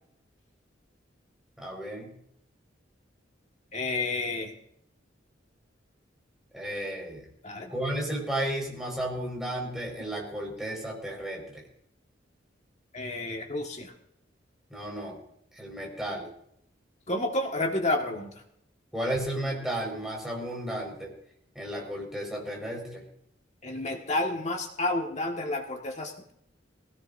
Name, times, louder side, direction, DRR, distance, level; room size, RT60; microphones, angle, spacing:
voice 1, 1.6-2.1 6.5-7.3 7.7-11.6 14.7-15.2 15.5-16.3 18.9-21.1 21.5-23.0, right 1 dB, ahead, -1 dB, 5.0 m, -33 dB
voice 2, 3.7-4.5 7.4-7.7 12.9-13.9 17.1-18.3 23.6-26.3, left 2 dB, 40° left, 2 dB, 1.7 m, -30 dB
19.5 x 17.5 x 2.7 m, 0.71 s
head